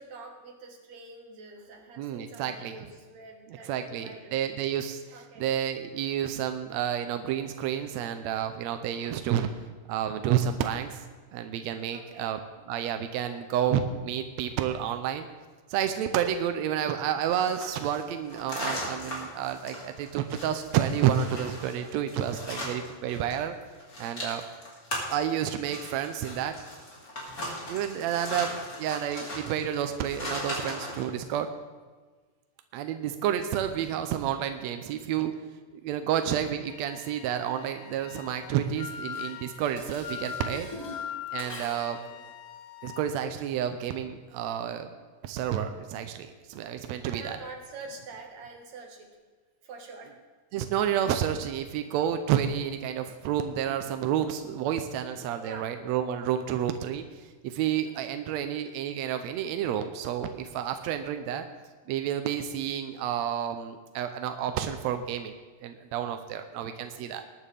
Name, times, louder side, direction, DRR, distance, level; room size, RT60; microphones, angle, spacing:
voice 1, 0.0-4.4 5.1-5.5 11.9-12.4 28.0-28.4 41.9-42.3 47.0-49.2 49.6-50.1 55.4-55.8 57.7-58.0 60.8-61.0 66.3-66.8, right 3 dB, 60° right, 2 dB, 2.8 m, -46 dB
voice 2, 2.0-2.8 3.5-9.5 9.9-11.0 11.3-12.4 12.7-15.3 15.7-23.5 24.0-24.4 25.1-26.5 27.7-28.5 28.8-31.5 32.7-35.3 35.8-40.7 41.3-42.0 42.8-44.9 45.2-47.4 50.5-61.5 61.9-65.3 65.6-67.2, right 9 dB, 75° right, 7 dB, 1.6 m, -30 dB
sound 1, 17.2-23.3 23.6-31.1, left 1 dB, 25° left, 3.2 m, -38 dB
Wind instrument woodwind instrument, 36.7-43.1, left 9 dB, 80° left, 1.4 m, -41 dB
Dishes pots and pans, 38.7-42.1, left 1 dB, 10° left, 1.3 m, -45 dB
20.0 x 9.9 x 3.4 m, 1.4 s
omnidirectional pair, 3.7 m